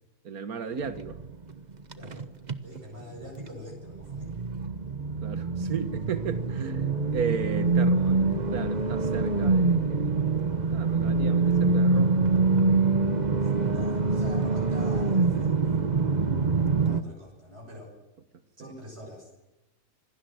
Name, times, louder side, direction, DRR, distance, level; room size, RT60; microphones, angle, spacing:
voice 1, 0.2-1.2 5.2-10.2 10.7-12.2, right 6 dB, 85° right, 1.8 m, -35 dB
sound 1, 0.8-3.5 3.7-17.0, right 3 dB, 30° right, 1.2 m, -25 dB
voice 2, 1.9-2.3 2.6-4.3 13.4-15.8 16.5-18.0 18.6-19.3, left 1 dB, 50° right, 6.9 m, -45 dB
26.5 x 19.0 x 7.8 m
omnidirectional pair, 1.5 m